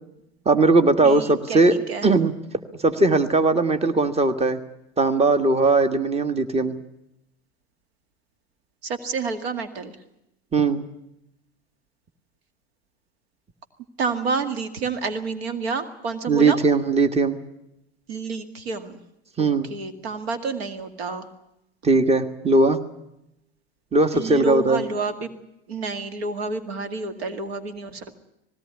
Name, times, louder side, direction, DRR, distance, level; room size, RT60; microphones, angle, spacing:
voice 1, 0.5-1.7 2.0-2.3 2.8-4.6 5.0-6.8 10.5-10.9 16.3-17.4 19.4-19.7 21.8-22.8 23.9-24.8, right 3 dB, 20° right, 10 dB, 1.6 m, -19 dB
voice 2, 1.0-2.1 8.8-10.0 14.0-16.6 18.1-19.0 19.4-21.3 24.1-25.3 25.7-28.2, right 4 dB, 80° right, 9 dB, 2.1 m, -29 dB
20.0 x 17.5 x 9.7 m, 0.85 s
hypercardioid pair, 80°, 31 cm